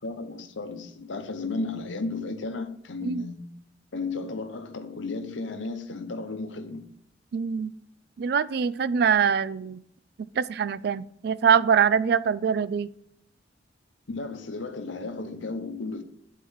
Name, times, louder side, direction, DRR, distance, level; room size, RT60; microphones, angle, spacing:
voice 1, 0.0-3.5 3.9-6.9 14.1-16.0, left 3 dB, 85° left, 0.9 m, -34 dB
voice 2, 7.3-7.7 8.2-9.8 10.2-12.9, right 7 dB, 55° right, 0.3 m, -24 dB
10.0 x 4.6 x 3.6 m
head